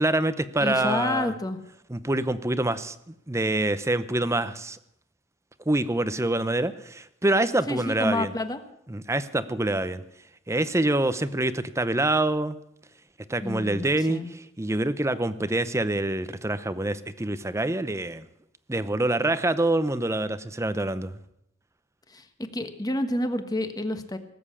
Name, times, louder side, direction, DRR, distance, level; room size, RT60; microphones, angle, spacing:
voice 1, 0.0-1.3 1.9-4.8 5.7-8.3 8.9-10.0 10.5-12.6 13.3-18.3 18.7-21.1, right 2 dB, 15° right, 13 dB, 0.7 m, -26 dB
voice 2, 0.6-1.6 7.7-8.6 13.4-14.3 22.1-22.3 22.5-24.2, left 1 dB, 20° left, 8 dB, 1.3 m, -29 dB
19.0 x 8.0 x 8.5 m, 0.79 s
head